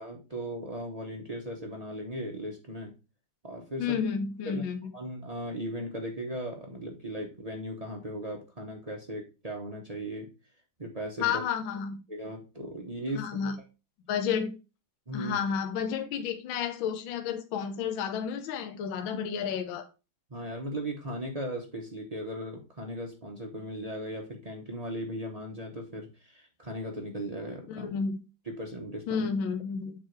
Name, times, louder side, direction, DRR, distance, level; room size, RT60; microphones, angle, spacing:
voice 1, 0.0-2.9 3.4-4.0 4.5-4.6 4.9-10.3 10.8-11.4 12.1-13.5 15.1-15.3 20.3-27.9 28.5-29.3, equal, 55° right, 0 dB, 0.4 m, -37 dB
voice 2, 3.8-4.9 11.2-12.0 13.1-13.6 14.1-14.5 15.1-19.9 27.7-28.2 29.1-29.9, left 7 dB, 70° left, 7 dB, 1.5 m, -31 dB
7.5 x 3.1 x 4.5 m, 0.30 s
omnidirectional pair, 2.4 m